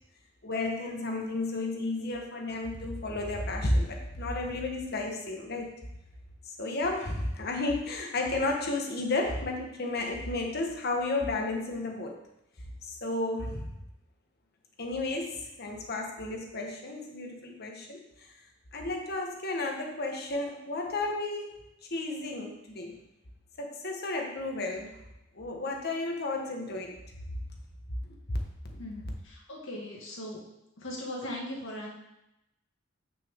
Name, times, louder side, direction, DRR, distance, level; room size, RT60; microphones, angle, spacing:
voice 1, 0.4-5.7 6.6-12.2 12.8-13.7 14.8-18.3 18.7-21.6 21.9-23.0 23.6-25.0 25.3-26.9 28.0-28.4 28.6-28.8, left 2 dB, 55° left, 2 dB, 1.3 m, -32 dB
voice 2, 28.8-30.4 30.8-31.9, left 1 dB, 70° left, -2 dB, 2.0 m, -39 dB
8.4 x 6.3 x 3.7 m, 0.87 s
head